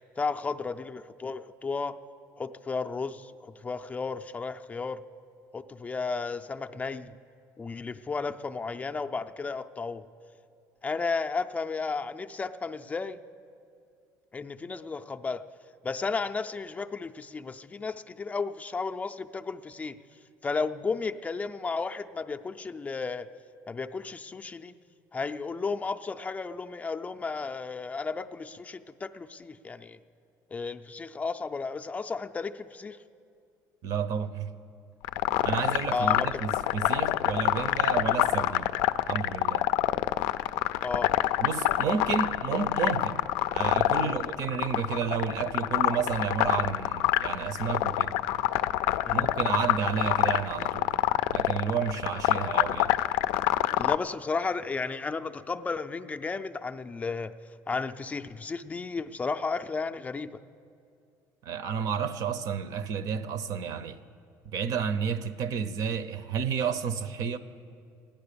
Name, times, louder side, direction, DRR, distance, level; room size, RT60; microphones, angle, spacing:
voice 1, 0.2-2.0 2.4-5.0 5.5-7.1 7.6-10.0 10.8-13.2 14.3-15.4 15.8-20.0 20.4-23.3 23.7-24.7 25.1-30.0 30.5-33.0 35.9-36.4 40.8-41.1 44.0-44.2 49.0-49.3 53.8-57.3 57.7-60.3, left 4 dB, 20° left, 0.4 m, -33 dB
voice 2, 33.8-34.5 35.4-38.7 39.1-39.7 41.4-43.2 43.5-48.1 49.1-50.9 51.3-52.9 61.4-64.0 64.5-67.4, right 6 dB, 65° right, 0.7 m, -31 dB
sound 1, 35.0-54.0, left 15 dB, 85° left, 0.4 m, -26 dB
14.5 x 10.5 x 6.8 m
cardioid pair, 115°, 7 cm